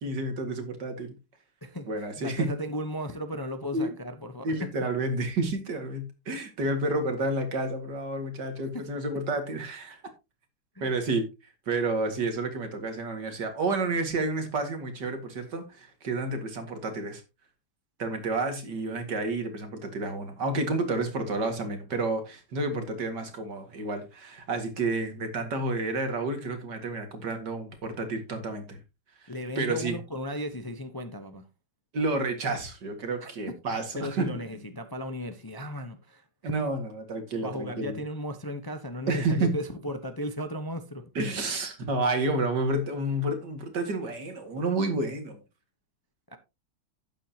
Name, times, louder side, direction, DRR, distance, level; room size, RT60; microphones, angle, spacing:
voice 1, 0.0-1.1 1.9-2.5 3.7-3.9 4.4-10.0 10.8-11.3 11.7-17.2 18.0-28.8 29.6-30.0 31.9-34.6 36.4-38.0 39.1-39.5 41.2-45.4, right 2 dB, 80° right, 2.6 m, -30 dB
voice 2, 2.2-4.6 8.7-8.8 10.7-10.9 29.3-31.4 33.2-33.5 33.9-36.5 37.4-41.1 46.3-46.4, equal, 20° left, 0.7 m, -35 dB
12.0 x 9.3 x 2.9 m
omnidirectional pair, 1.8 m